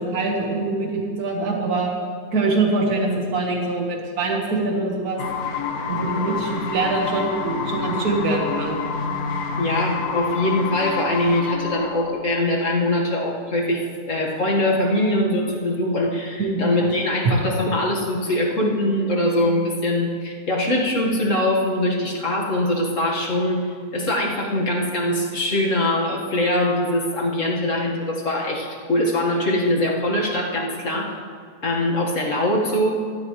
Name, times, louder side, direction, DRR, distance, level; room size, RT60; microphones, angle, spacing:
voice 1, 0.0-1.9 2.3-5.2 5.9-8.8 16.4-16.6, right 3 dB, 65° right, 0 dB, 2.1 m, -23 dB
sound 1, 5.2-12.1, left 5 dB, 70° left, 1.4 m, -28 dB
voice 2, 9.6-31.2 31.6-32.9, left 1 dB, 50° left, -2 dB, 2.1 m, -22 dB
16.0 x 13.0 x 3.2 m, 2.2 s
omnidirectional pair, 1.8 m